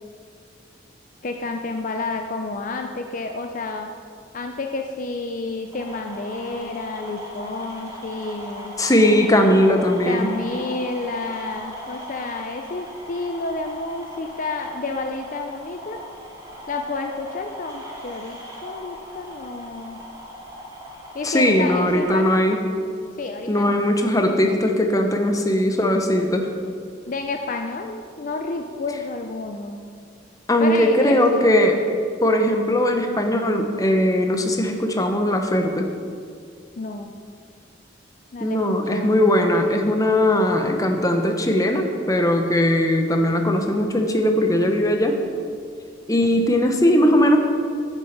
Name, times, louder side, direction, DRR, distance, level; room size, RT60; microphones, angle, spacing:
voice 1, 1.2-3.9 4.3-8.8 10.1-16.0 16.7-20.0 21.1-22.4 23.2-23.8 27.1-29.8 30.6-31.5 36.8-37.1 38.3-39.2, left 3 dB, 45° left, 4 dB, 0.5 m, -30 dB
sound 1, 5.7-22.1, equal, 20° right, 2.1 m, -39 dB
voice 2, 8.8-10.3 21.2-22.6 23.5-26.5 30.5-31.8 32.2-35.9 38.4-45.2 46.1-47.4, left 1 dB, 20° left, 4 dB, 0.9 m, -19 dB
9.4 x 8.1 x 5.9 m, 2.2 s
head